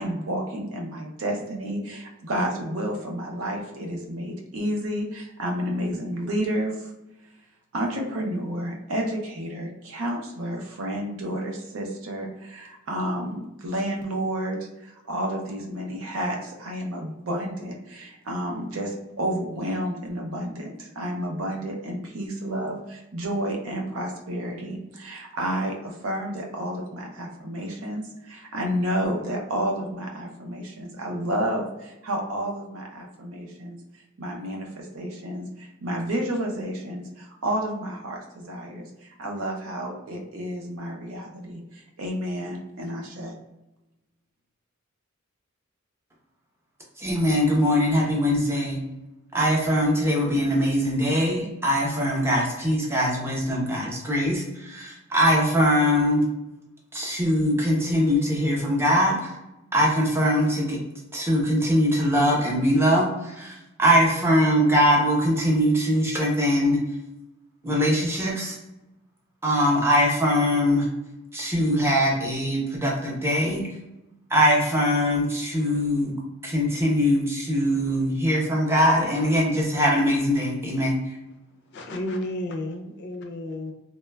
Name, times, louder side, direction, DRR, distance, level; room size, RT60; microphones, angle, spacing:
voice 1, 0.0-6.9 7.7-33.8 34.2-43.3, equal, 80° right, 1 dB, 0.6 m, -30 dB
voice 2, 47.0-48.8 49.3-56.2 56.9-59.3 59.7-60.8 61.1-66.8 67.6-68.6 69.4-70.9 71.3-73.6 74.3-76.1 76.4-81.2, equal, 10° right, -3 dB, 0.6 m, -22 dB
voice 3, 81.7-83.7, left 1 dB, 55° left, 4 dB, 0.4 m, -32 dB
3.0 x 2.1 x 2.2 m, 0.95 s
head